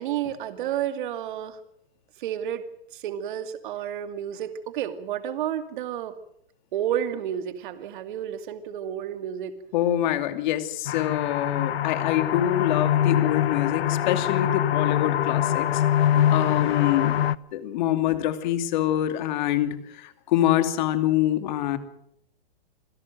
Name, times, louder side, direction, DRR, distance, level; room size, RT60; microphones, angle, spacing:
voice 1, 0.0-1.6 2.2-2.6 2.9-6.2 6.7-9.6 16.1-17.0, right 10 dB, 55° right, 10 dB, 2.5 m, -31 dB
voice 2, 9.7-15.8 16.3-17.2 17.5-21.8, left 12 dB, 50° left, 10 dB, 2.6 m, -25 dB
sound 1, 10.9-17.4, left 11 dB, 80° left, 0.8 m, -24 dB
26.5 x 17.0 x 7.7 m, 0.71 s
hypercardioid pair, 140°, 30 cm